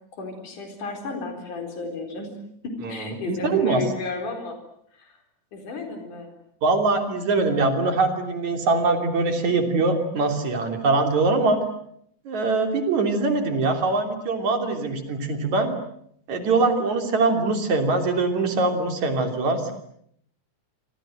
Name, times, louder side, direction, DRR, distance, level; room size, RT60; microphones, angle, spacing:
voice 1, 0.1-2.3 2.6-4.6 4.9-5.2 5.5-6.3, left 3 dB, 80° left, 5 dB, 5.7 m, -33 dB
voice 2, 2.8-3.8 6.6-11.6 12.3-15.7 16.3-19.7, right 3 dB, 65° right, 5 dB, 4.5 m, -23 dB
28.0 x 26.0 x 7.7 m, 0.69 s
omnidirectional pair, 3.5 m